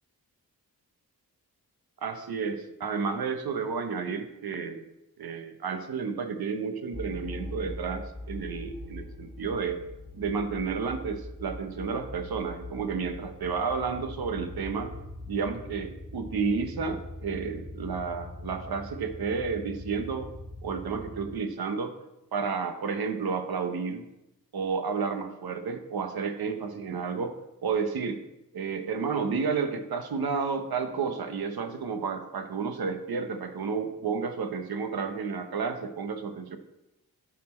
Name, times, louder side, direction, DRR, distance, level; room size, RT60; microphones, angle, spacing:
voice 1, 2.0-4.8 5.2-9.8 10.1-14.9 15.3-20.3 20.6-21.9 22.3-24.0 24.5-28.2 28.5-36.6, right 5 dB, 80° right, 7 dB, 0.9 m, -31 dB
sound 1, 6.9-21.3, left 1 dB, 5° left, 2.3 m, -42 dB
12.0 x 4.2 x 4.2 m, 0.92 s
wide cardioid pair, 145°, 36 cm